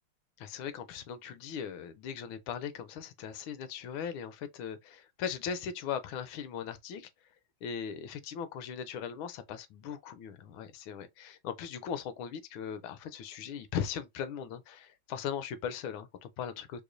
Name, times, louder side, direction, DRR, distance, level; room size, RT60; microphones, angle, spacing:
voice 1, 0.4-7.1 7.6-16.8, left 7 dB, 80° left, 1.3 m, -39 dB
4.8 x 2.2 x 2.5 m
omnidirectional pair, 2.3 m